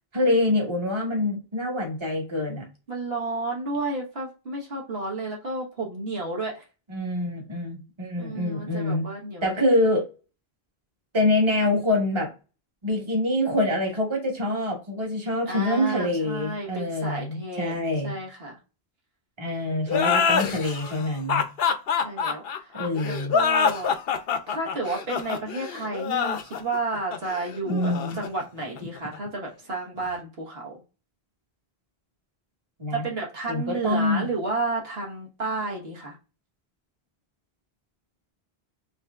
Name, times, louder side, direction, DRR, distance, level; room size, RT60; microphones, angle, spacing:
voice 1, 0.1-2.6 6.9-9.1 9.4-10.1 11.1-12.3 12.8-18.1 19.4-21.4 22.7-23.3 27.7-28.2 32.8-33.0 33.5-34.3, left 1 dB, 30° right, 0 dB, 1.4 m, -25 dB
voice 2, 2.9-6.6 8.2-9.6 15.5-18.6 22.0-22.8 23.0-23.9 24.5-30.8 32.9-36.2, right 2 dB, 70° right, -2 dB, 1.5 m, -32 dB
sound 1, 19.9-29.2, left 6 dB, 70° left, 0.8 m, -26 dB
5.5 x 2.7 x 2.3 m, 0.31 s
omnidirectional pair, 1.0 m